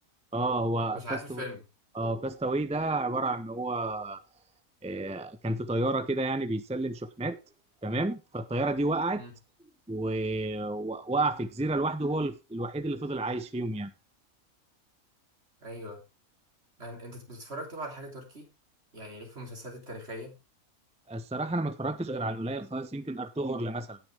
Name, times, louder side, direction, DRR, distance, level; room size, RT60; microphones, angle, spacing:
voice 1, 0.3-1.4 1.9-4.2 4.8-7.4 7.8-9.2 9.9-13.9 21.1-24.0, right 2 dB, 10° right, 0.3 m, -31 dB
voice 2, 0.9-1.6 9.2-9.3 15.6-16.0 16.8-18.5 18.9-20.4, equal, 45° right, 3.5 m, -40 dB
17.5 x 6.3 x 3.4 m
omnidirectional pair, 1.6 m